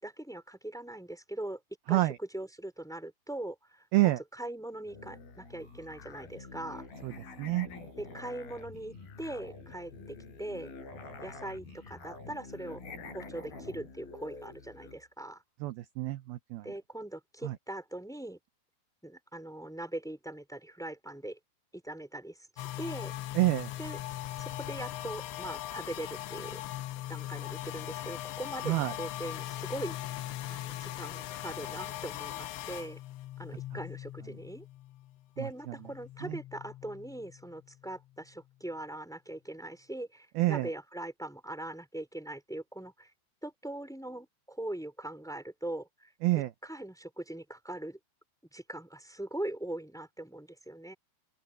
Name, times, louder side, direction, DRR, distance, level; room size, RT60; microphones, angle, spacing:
voice 1, 0.0-1.6 1.9-6.9 8.0-10.7 11.2-12.8 13.1-15.4 16.6-18.4 19.0-21.4 21.7-23.1 23.8-24.0 24.4-26.6 27.1-30.0 30.5-33.0 33.4-34.6 35.4-43.1 43.4-46.1 46.6-48.0 48.5-50.9, right 1 dB, ahead, 4.3 m, -41 dB
Musical instrument, 4.9-15.0, left 3 dB, 55° left, 8.8 m, -47 dB
voice 2, 15.6-16.7 17.4-17.5 23.4-23.7 28.7-28.9 36.2-36.4 40.4-40.7 46.2-46.5, right 17 dB, 75° right, 2.4 m, -27 dB
sound 1, 22.6-35.3 35.6-38.0, left 15 dB, 85° left, 3.2 m, -40 dB
open air
omnidirectional pair, 5.1 m